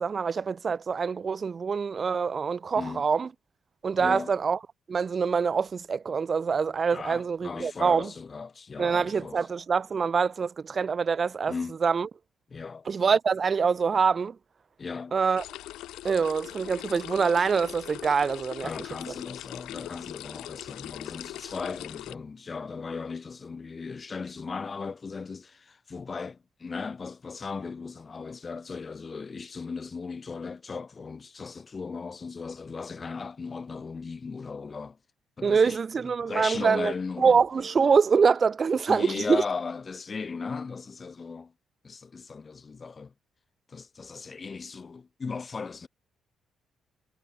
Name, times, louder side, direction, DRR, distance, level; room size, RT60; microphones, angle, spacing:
voice 1, 0.0-3.3 3.8-4.6 4.9-8.1 8.8-11.5 11.8-12.1 12.9-14.4 15.1-15.4 16.0-18.7 35.4-39.4, right 5 dB, 40° right, 2.5 m, -25 dB
voice 2, 2.7-3.0 4.0-4.3 6.9-9.4 11.5-11.8 12.5-12.9 14.8-15.1 18.6-35.0 35.4-35.8 36.2-37.4 38.9-41.5 41.8-43.1 43.7-45.9, left 4 dB, 35° left, 5.5 m, -37 dB
sound 1, 15.4-22.1, left 15 dB, 90° left, 2.8 m, -41 dB
cardioid pair, 90°, 0 cm